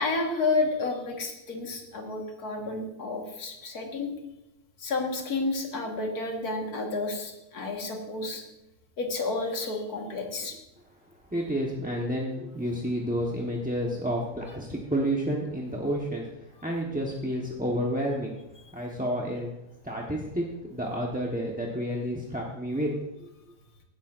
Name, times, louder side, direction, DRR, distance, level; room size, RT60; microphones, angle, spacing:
voice 1, 0.0-4.1 4.8-8.4 9.0-10.5, left 3 dB, 75° left, 2 dB, 2.0 m, -30 dB
voice 2, 11.3-18.3 18.7-19.6 19.8-22.9 23.2-23.3, equal, 5° right, -3 dB, 0.8 m, -30 dB
16.5 x 10.5 x 2.5 m, 0.92 s
omnidirectional pair, 1.6 m